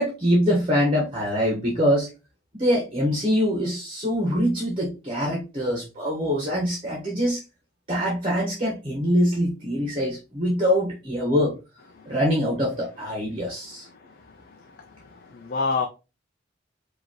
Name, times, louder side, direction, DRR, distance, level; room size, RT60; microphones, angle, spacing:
voice 1, 0.0-2.1 2.5-7.4 7.9-11.5 12.0-13.9, equal, 30° right, -2 dB, 1.4 m, -24 dB
voice 2, 14.1-14.7 15.0-15.9, left 4 dB, 50° left, 4 dB, 0.6 m, -29 dB
5.0 x 2.9 x 3.0 m, 0.28 s
head